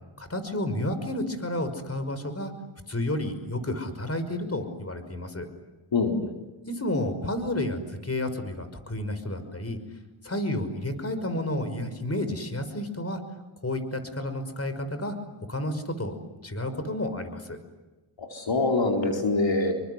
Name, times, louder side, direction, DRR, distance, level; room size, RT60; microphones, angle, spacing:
voice 1, 0.2-2.5 2.9-5.5 6.7-9.8 10.2-13.2 13.6-15.2 15.5-16.2 16.4-17.6, left 1 dB, 30° left, 10 dB, 5.7 m, -31 dB
voice 2, 5.9-6.3 18.2-19.7, left 3 dB, 60° left, 1 dB, 4.5 m, -24 dB
29.5 x 24.5 x 8.2 m, 1.1 s
cardioid pair, 60°, 50 cm